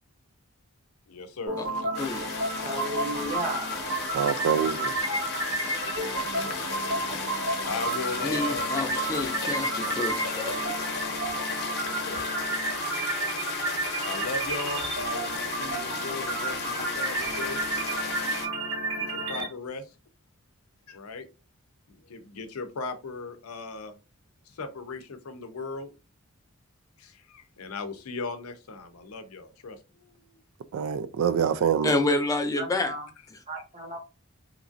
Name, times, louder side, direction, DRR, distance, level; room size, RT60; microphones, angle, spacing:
voice 1, 1.1-2.0 5.3-8.7 11.8-12.3 14.0-17.6 19.0-19.9 20.9-21.3 21.9-24.0 24.5-25.9 27.0-30.4 31.2-31.4, left 4 dB, 90° left, 0.6 m, -38 dB
sound 1, 1.5-19.5, right 2 dB, 55° right, 1.4 m, -31 dB
sound 2, 1.9-18.5, left 4 dB, 50° left, 0.8 m, -35 dB
voice 2, 2.6-3.7 32.6-33.1 33.5-34.0, right 1 dB, 30° right, 0.8 m, -34 dB
voice 3, 4.1-4.9 30.7-31.9, right 7 dB, 75° right, 0.3 m, -25 dB
voice 4, 8.2-10.7 31.8-32.9, left 2 dB, 15° left, 0.4 m, -28 dB
2.9 x 2.4 x 2.5 m
head